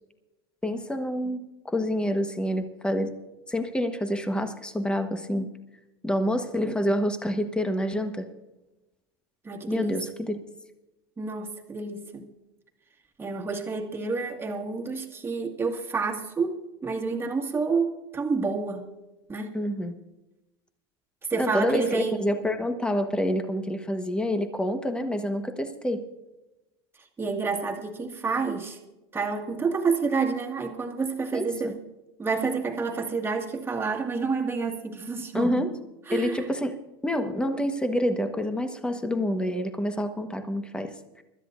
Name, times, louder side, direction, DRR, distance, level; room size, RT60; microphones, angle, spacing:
voice 1, 0.6-3.1 3.5-5.5 6.0-8.3 9.7-10.3 19.5-19.9 21.4-26.1 31.3-31.7 35.3-35.7 36.1-41.2, equal, 5° left, 8 dB, 1.3 m, -27 dB
voice 2, 9.4-10.0 11.2-12.3 13.2-18.8 19.3-19.5 21.3-22.3 27.2-28.8 29.1-31.8 32.2-35.7 36.1-36.4, right 4 dB, 15° right, 1 dB, 2.0 m, -29 dB
24.5 x 13.0 x 2.6 m, 1.0 s
hypercardioid pair, 105°, 13 cm